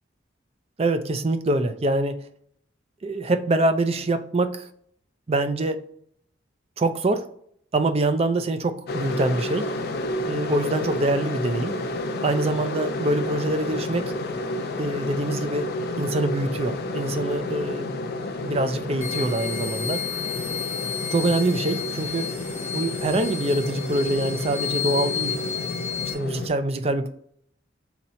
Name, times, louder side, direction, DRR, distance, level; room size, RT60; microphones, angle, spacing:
voice 1, 0.8-2.1 3.0-4.7 5.3-5.8 6.8-7.3 7.7-9.7 10.3-11.8 12.2-14.1 14.8-15.7 16.0-17.9 18.4-20.0 21.1-22.3 22.7-25.4 26.1-27.1, right 2 dB, 30° right, 9 dB, 0.4 m, -24 dB
sound 1, 8.9-26.5, left 2 dB, 55° left, 0.5 m, -31 dB
sound 2, 19.0-26.1, left 8 dB, 15° left, 1.6 m, -32 dB
4.1 x 2.8 x 4.2 m, 0.64 s
head